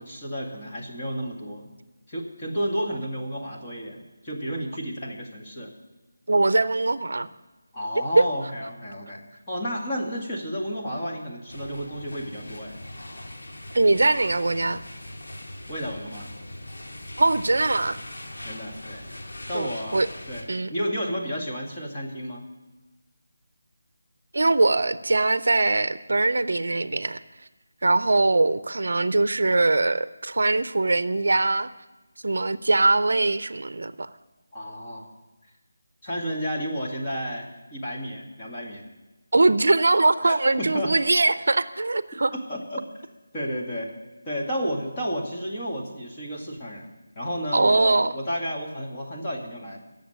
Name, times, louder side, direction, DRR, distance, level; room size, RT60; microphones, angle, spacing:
voice 1, 0.0-1.7 2.1-5.7 7.7-12.8 15.7-16.3 18.4-19.1 19.5-22.4 34.5-35.1 36.0-38.9 40.2-40.9 42.5-42.8 43.3-43.9 44.3-46.9 47.2-49.8, equal, 15° left, -4 dB, 1.9 m, -32 dB
voice 2, 6.3-7.3 13.7-14.8 17.2-18.0 19.5-20.1 20.5-20.7 24.3-27.2 27.8-31.7 32.2-34.1 39.3-42.3 47.5-48.1, right 2 dB, 70° right, 15 dB, 0.6 m, -22 dB
sound 1, 11.5-20.4, left 1 dB, 70° left, 2.7 m, -40 dB
14.0 x 7.3 x 10.0 m, 1.1 s
figure-of-eight pair, 175°, 0 cm